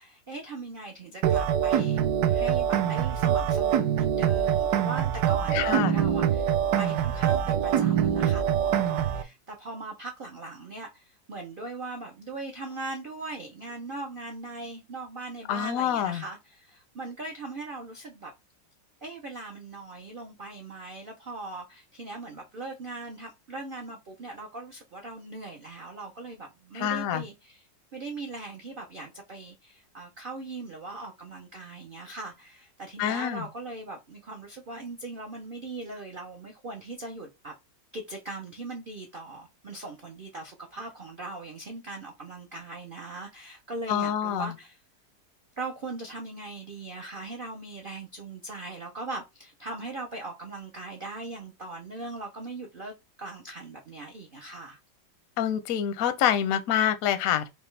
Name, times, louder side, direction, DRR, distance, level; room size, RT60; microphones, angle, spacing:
voice 1, 0.0-18.3 19.0-27.6 27.9-37.5 37.9-44.8 45.6-54.8, right 2 dB, 90° right, 0.4 m, -40 dB
sound 1, 1.2-9.2, right 9 dB, 70° right, 1.0 m, -24 dB
voice 2, 5.5-6.0 15.5-16.2 26.7-27.2 33.0-33.5 43.9-44.5 55.4-57.5, left 10 dB, 70° left, 0.8 m, -26 dB
5.0 x 2.3 x 3.2 m
omnidirectional pair, 2.0 m